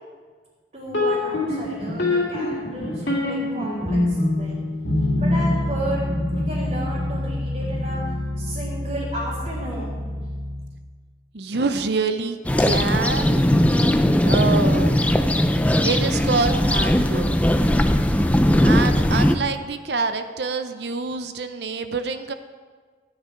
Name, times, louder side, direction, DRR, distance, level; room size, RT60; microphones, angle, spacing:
voice 1, 0.7-4.6 5.0-10.3, right 1 dB, 40° right, -8 dB, 3.3 m, -33 dB
sound 1, 0.9-10.7, left 1 dB, 75° left, 2.5 m, -25 dB
voice 2, 11.3-13.4 14.2-15.1 15.8-17.4 18.6-22.3, right 4 dB, 65° right, 9 dB, 0.7 m, -26 dB
sound 2, 12.4-19.3, left 1 dB, 10° left, 0.5 m, -19 dB
14.5 x 9.8 x 4.6 m, 1.5 s
head